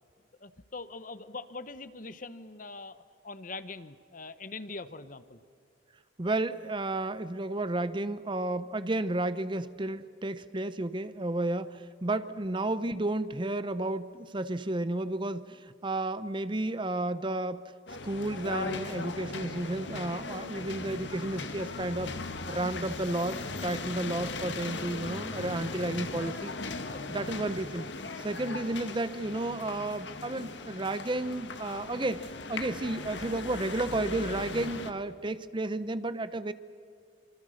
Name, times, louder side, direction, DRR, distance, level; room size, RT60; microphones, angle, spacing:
voice 1, 0.4-5.4 26.9-27.0, left 3 dB, 45° left, 13 dB, 0.9 m, -42 dB
voice 2, 6.2-17.7 18.0-22.2 22.5-26.5 27.1-27.9 28.2-36.5, right 2 dB, 25° right, 14 dB, 0.7 m, -32 dB
sound 1, 17.9-34.9, left 3 dB, 70° left, 1.6 m, -38 dB
26.0 x 25.5 x 6.5 m, 2.3 s
head